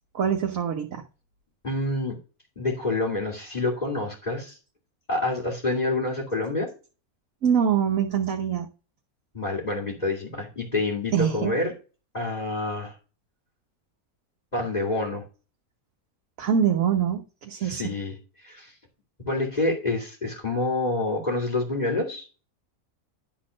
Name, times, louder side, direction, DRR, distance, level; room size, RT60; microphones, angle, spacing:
voice 1, 0.1-1.0 7.4-8.7 11.1-11.5 16.4-17.9, right 8 dB, 65° right, 1.5 m, -24 dB
voice 2, 1.6-2.2 2.6-4.6 5.1-6.7 9.3-11.7 12.1-13.0 14.5-15.2 17.6-18.7 19.3-22.3, left 2 dB, 30° left, 2.5 m, -27 dB
11.5 x 4.1 x 6.2 m
omnidirectional pair, 1.6 m